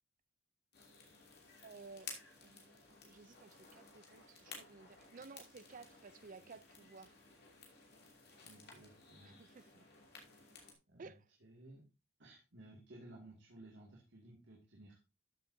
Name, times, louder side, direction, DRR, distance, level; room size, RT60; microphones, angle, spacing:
sound 1, 0.7-10.7, left 5 dB, 50° left, 2.6 m, -56 dB
voice 1, 1.6-7.2 9.2-9.9 11.0-11.2, right 4 dB, 40° right, 0.4 m, -56 dB
voice 2, 8.4-9.4 10.9-11.1 11.4-11.8 12.2-15.0, right 1 dB, 55° right, 2.3 m, -57 dB
13.0 x 7.7 x 2.7 m
head